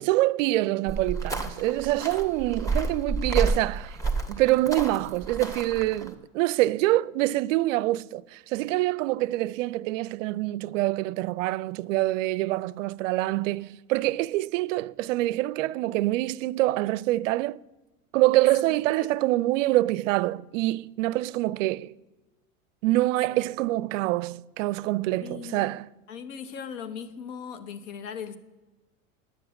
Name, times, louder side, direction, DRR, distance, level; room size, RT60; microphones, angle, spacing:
voice 1, 0.0-4.0 4.3-17.6 18.1-21.9 22.8-25.9, right 17 dB, 65° right, 0.5 m, -25 dB
sound 1, 0.9-6.1, right 3 dB, 10° left, 1.5 m, -30 dB
voice 2, 18.6-19.1 23.3-23.4 25.2-25.7 26.1-28.4, left 7 dB, 65° left, 1.3 m, -39 dB
10.5 x 7.7 x 8.6 m
hypercardioid pair, 95°, 41 cm